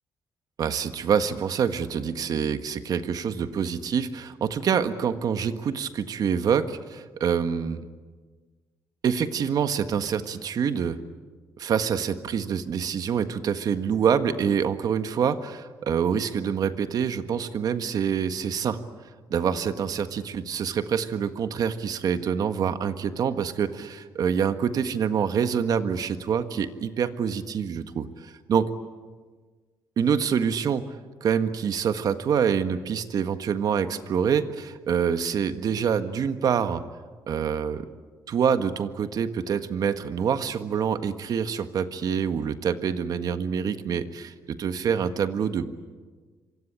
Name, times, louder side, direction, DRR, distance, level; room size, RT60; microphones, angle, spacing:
voice 1, 0.6-7.8 9.0-11.0 11.6-18.8 19.3-28.7 30.0-30.8 31.2-36.8 37.3-37.9 38.3-45.7, right 7 dB, 60° right, 10 dB, 1.6 m, -26 dB
26.0 x 24.5 x 8.9 m, 1.4 s
cardioid pair, 120°, 7 cm